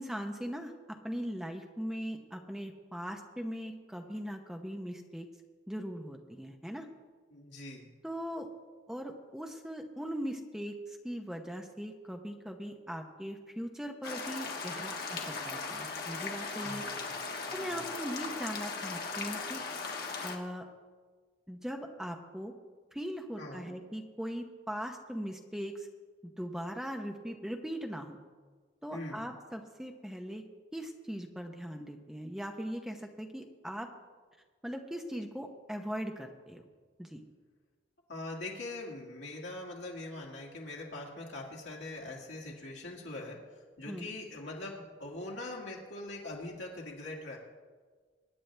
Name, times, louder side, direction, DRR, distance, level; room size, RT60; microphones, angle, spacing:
voice 1, 0.0-5.3 5.7-6.9 8.0-8.5 8.9-16.8 17.5-19.6 20.2-20.7 21.5-22.5 22.9-25.9 26.4-28.2 28.8-30.4 30.7-33.9 34.6-36.6 37.0-37.2 43.9-44.1, equal, 5° right, 3 dB, 0.8 m, -40 dB
voice 2, 7.3-7.9 16.6-17.1 17.5-17.8 23.4-23.8 28.9-29.3 38.1-43.4 43.8-47.4, left 2 dB, 80° left, -3 dB, 2.1 m, -42 dB
sound 1, 14.0-20.4, left 4 dB, 55° left, 1.5 m, -38 dB
23.5 x 9.7 x 3.3 m, 1.5 s
head